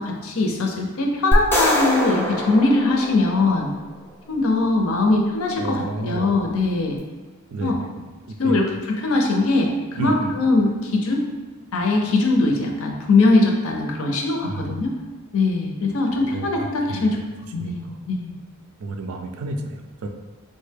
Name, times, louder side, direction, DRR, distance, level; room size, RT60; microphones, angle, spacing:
voice 1, 0.0-3.7 4.3-7.0 7.6-7.8 8.4-11.2 11.7-14.9 15.3-17.2 17.5-18.3, left 2 dB, 70° left, 1 dB, 0.5 m, -21 dB
sound 1, 1.3-3.7, equal, 10° left, 0.4 m, -23 dB
voice 2, 5.6-6.3 7.5-8.6 9.9-10.3 14.5-14.7 15.9-16.0 16.3-17.2 17.6-17.7 18.8-20.1, right 2 dB, 75° right, 4 dB, 0.4 m, -30 dB
3.6 x 2.2 x 3.3 m, 1.3 s
head